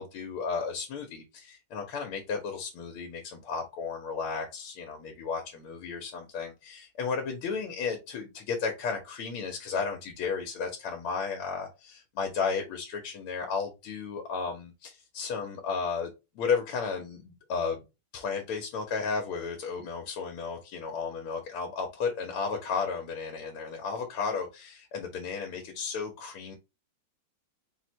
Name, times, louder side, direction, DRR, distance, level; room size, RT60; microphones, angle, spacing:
voice 1, 0.0-16.1 16.3-17.8 18.1-26.6, left 5 dB, 80° left, 3 dB, 1.7 m, -33 dB
4.6 x 2.1 x 4.2 m, 0.26 s
omnidirectional pair, 2.4 m